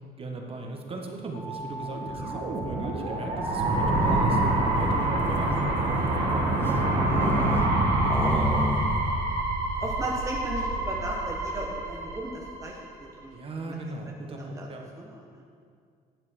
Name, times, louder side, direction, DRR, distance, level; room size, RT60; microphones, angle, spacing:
voice 1, 0.2-6.8 7.2-7.4 7.7-8.7 13.3-14.8, right 2 dB, 35° right, 2 dB, 1.3 m, -38 dB
sound 1, 1.3-11.1, equal, 65° left, 2.5 m, -45 dB
sound 2, 1.8-12.8, right 2 dB, 65° right, 2.5 m, -26 dB
sound 3, 3.5-4.5 5.2-7.8 8.0-9.1 9.4-9.5 9.8-10.2, left 2 dB, 15° left, 0.8 m, -33 dB
voice 2, 9.8-13.4 13.7-13.8 14.3-14.7 15.0-15.2, right 2 dB, 20° right, -2 dB, 1.1 m, -36 dB
12.0 x 7.5 x 4.3 m, 2.2 s
cardioid pair, 110°, 17 cm